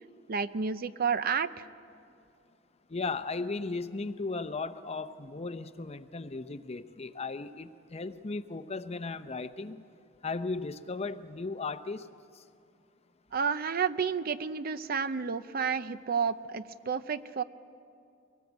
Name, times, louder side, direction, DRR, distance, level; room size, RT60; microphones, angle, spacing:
voice 1, 0.3-1.7 13.3-17.4, right 6 dB, 50° right, 13 dB, 0.6 m, -31 dB
voice 2, 2.9-9.8 10.2-12.1 12.3-12.4, left 3 dB, 30° left, 11 dB, 0.7 m, -36 dB
23.5 x 18.5 x 8.1 m, 2.4 s
head